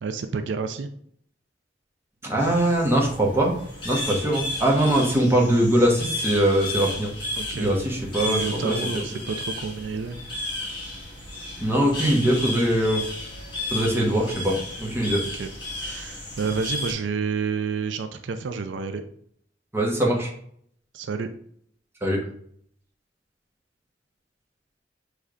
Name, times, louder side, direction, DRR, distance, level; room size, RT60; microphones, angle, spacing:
voice 1, 0.0-0.9 7.4-7.7 8.2-10.2 15.2-15.5 15.8-19.0 20.9-21.3, right 5 dB, 85° right, 8 dB, 0.4 m, -30 dB
voice 2, 2.2-3.6 3.8-7.1 7.6-8.8 11.6-13.0 13.7-15.2 19.7-20.3 22.0-22.2, right 1 dB, 15° right, -1 dB, 1.0 m, -22 dB
sound 1, 2.4-16.9, left 2 dB, 25° left, 1.5 m, -33 dB
6.5 x 3.2 x 2.4 m, 0.65 s
head